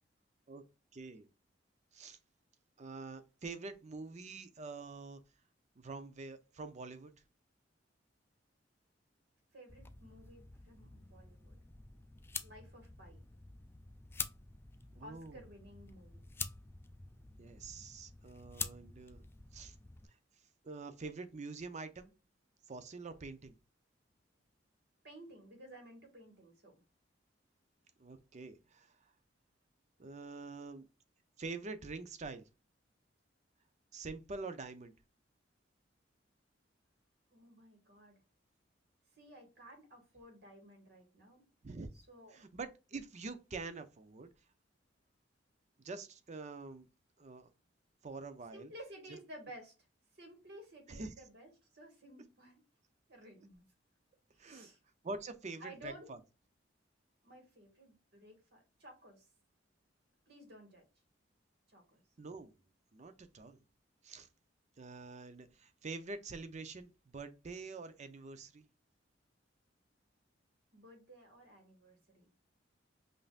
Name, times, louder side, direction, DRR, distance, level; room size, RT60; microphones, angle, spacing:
voice 1, 0.9-1.3 1.9-2.2 2.8-5.2 5.8-7.1 15.0-15.4 17.4-19.2 19.5-19.7 20.6-22.1 22.7-23.5 28.0-28.9 30.0-30.9 31.4-32.4 33.9-34.9 41.6-41.9 42.3-44.3 45.8-46.9 47.2-47.5 48.0-48.7 50.9-51.1 54.4-54.7 55.0-56.2 62.2-62.5 62.9-63.6 64.0-64.3 64.8-68.6, right 3 dB, 40° right, 0.6 m, -46 dB
voice 2, 9.5-11.6 12.4-13.2 15.0-16.2 25.0-26.7 37.3-38.2 39.2-41.5 41.9-42.4 48.5-49.7 50.2-52.6 53.1-53.6 54.3-54.8 55.6-56.1 57.2-59.3 60.3-60.9 61.7-62.0 70.7-72.3, equal, 60° right, 1.8 m, -55 dB
sound 1, 9.7-20.1, left 4 dB, 15° left, 0.3 m, -47 dB
5.3 x 2.6 x 2.4 m
head